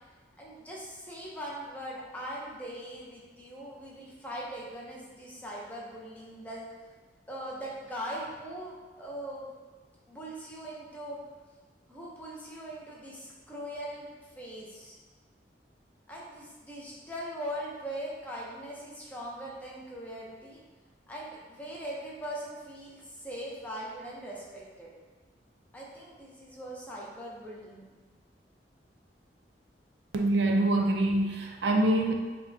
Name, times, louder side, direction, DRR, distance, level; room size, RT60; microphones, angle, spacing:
voice 1, 0.4-6.7 7.3-9.5 10.1-11.2 11.9-15.0 16.1-20.6 21.1-24.9 25.7-27.9, equal, 10° left, -5 dB, 0.6 m, -41 dB
voice 2, 30.1-32.1, right 1 dB, 70° right, 3 dB, 0.4 m, -25 dB
4.9 x 2.2 x 2.6 m, 1.3 s
head